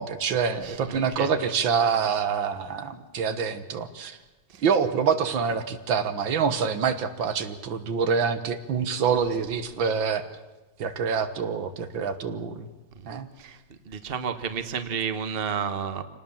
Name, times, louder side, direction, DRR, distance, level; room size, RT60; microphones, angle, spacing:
voice 1, 0.0-4.2 4.6-10.3 10.8-12.7 13.1-13.3, right 6 dB, 85° right, 9 dB, 2.1 m, -26 dB
voice 2, 0.6-1.3 4.5-4.6 13.0-13.1 13.4-13.6 13.8-16.0, right 7 dB, 35° right, 9 dB, 1.4 m, -31 dB
26.5 x 19.0 x 7.3 m, 1.1 s
omnidirectional pair, 2.1 m